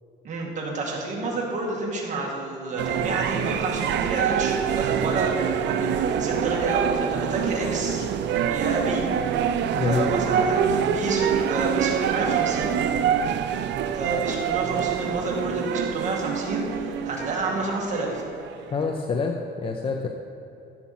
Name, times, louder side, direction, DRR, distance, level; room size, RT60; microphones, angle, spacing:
voice 1, 0.2-8.1 8.5-9.0 9.8-12.8 13.9-18.2, right 2 dB, 35° right, -2 dB, 2.0 m, -29 dB
sound 1, 2.8-18.9, right 8 dB, 65° right, 0.5 m, -26 dB
voice 2, 9.7-10.2 18.7-20.1, left 4 dB, 25° left, 3 dB, 0.5 m, -26 dB
13.5 x 7.3 x 4.2 m, 2.9 s
cardioid pair, 170°, 20 cm